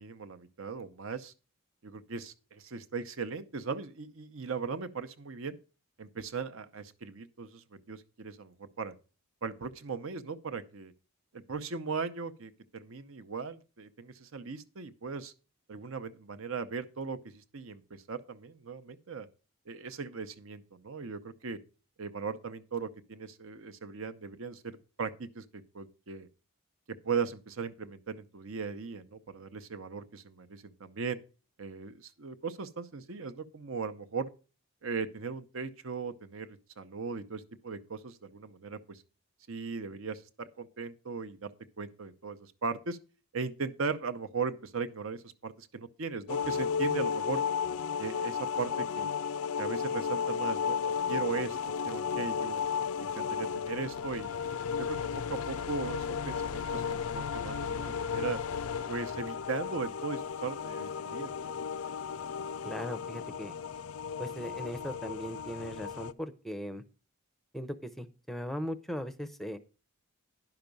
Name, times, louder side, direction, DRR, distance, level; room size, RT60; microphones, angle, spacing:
voice 1, 0.0-1.3 1.8-5.6 6.0-8.9 9.4-10.9 11.3-15.3 15.7-19.3 19.7-21.6 22.0-26.3 26.9-31.2 31.6-34.3 34.8-39.0 39.5-43.0 43.3-47.4 48.0-49.1 49.6-51.6 51.8-52.6 53.0-54.3 54.8-58.4 58.9-61.6, right 5 dB, 65° right, 0.7 m, -38 dB
sound 1, 46.3-66.1, left 6 dB, 75° left, 0.4 m, -34 dB
voice 2, 62.6-63.6 64.2-66.8 67.5-69.6, equal, ahead, 0.6 m, -38 dB
10.5 x 5.8 x 5.2 m
head